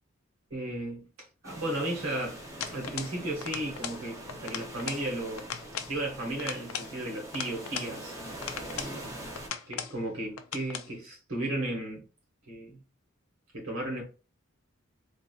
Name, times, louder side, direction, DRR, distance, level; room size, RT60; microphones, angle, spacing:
voice 1, 0.5-1.1 1.4-2.4 2.7-5.5 5.9-8.2 8.7-9.2 9.7-12.0 12.5-12.8 13.5-14.0, right 1 dB, 80° right, 1.7 m, -34 dB
sound 1, 1.4-9.5, right 1 dB, 15° right, 0.7 m, -43 dB
sound 2, 2.6-3.2 3.4-4.0 4.3-5.1 5.4-6.0 6.4-7.9 8.4-9.0 9.4-10.0 10.4-10.9, left 8 dB, 80° left, 0.4 m, -38 dB
3.6 x 2.8 x 2.4 m
head